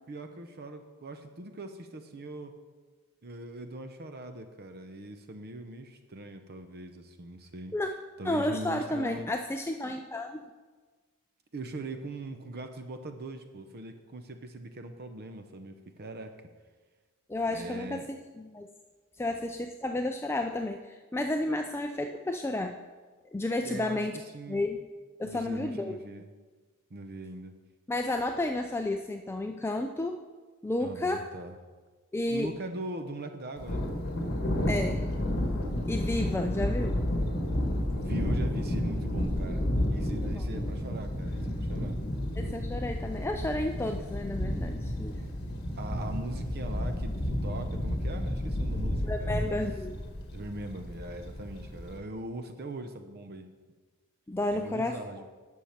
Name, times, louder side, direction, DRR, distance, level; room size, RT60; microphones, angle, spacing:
voice 1, 0.1-2.5 3.2-7.7 8.2-9.3 11.5-16.3 17.5-18.1 23.6-24.1 24.3-24.6 25.2-26.3 26.9-27.5 30.8-31.5 32.3-33.9 36.1-36.6 37.9-42.0 45.8-49.4 50.3-53.5 54.5-55.3, right 2 dB, 45° right, 7 dB, 0.7 m, -41 dB
voice 2, 8.2-10.5 17.3-18.0 18.4-18.7 19.2-22.8 23.3-24.1 24.5-24.8 25.2-26.0 27.9-30.2 30.6-31.3 32.1-32.5 34.7-35.0 35.9-36.9 40.2-40.4 42.4-45.2 49.0-50.0 54.3-55.0, left 2 dB, 10° left, 5 dB, 0.4 m, -31 dB
Thunder, 33.6-52.0, left 1 dB, 50° left, 1.5 m, -31 dB
10.5 x 6.4 x 5.7 m, 1.4 s
head